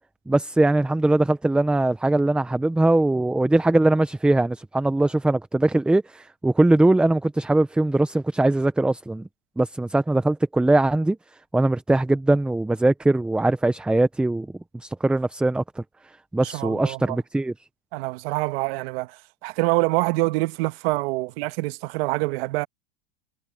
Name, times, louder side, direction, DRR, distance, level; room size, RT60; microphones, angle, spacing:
voice 1, 0.3-9.3 9.6-11.2 11.5-14.5 14.7-15.8 16.3-17.5, right 2 dB, 5° right, 0.4 m, -21 dB
voice 2, 16.4-17.2 17.9-22.7, right 22 dB, 60° right, 1.2 m, -26 dB
supercardioid pair, 135°, 33 cm